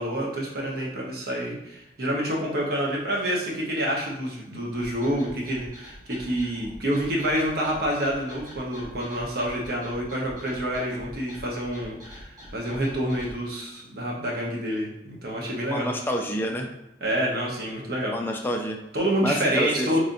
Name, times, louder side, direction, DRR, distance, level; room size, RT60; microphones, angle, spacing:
voice 1, 0.0-15.9 17.0-18.2 18.9-20.0, equal, 55° right, -3 dB, 0.9 m, -28 dB
sound 1, 4.7-13.3, equal, 20° right, 1.4 m, -45 dB
voice 2, 15.7-16.7 18.1-18.8 19.2-19.9, equal, 10° left, 1 dB, 0.4 m, -28 dB
3.9 x 3.2 x 2.6 m, 0.92 s
head